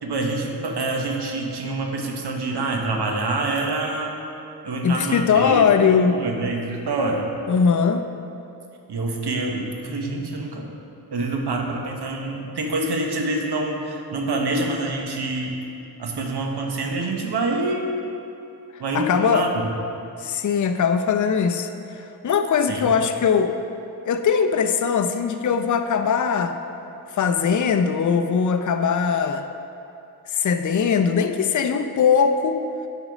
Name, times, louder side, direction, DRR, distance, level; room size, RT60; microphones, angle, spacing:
voice 1, 0.0-4.2 4.6-7.3 8.9-10.7 11.1-15.5 16.0-18.0 18.8-19.5 22.7-22.9, right 2 dB, 85° right, 1 dB, 1.1 m, -26 dB
voice 2, 4.8-6.2 7.5-8.0 18.9-19.5 20.2-21.7 22.0-23.6 24.1-26.6 27.1-29.5 30.3-32.6, left 6 dB, 50° left, 7 dB, 0.5 m, -20 dB
9.4 x 5.1 x 5.2 m, 2.7 s
cardioid pair, 70°, 39 cm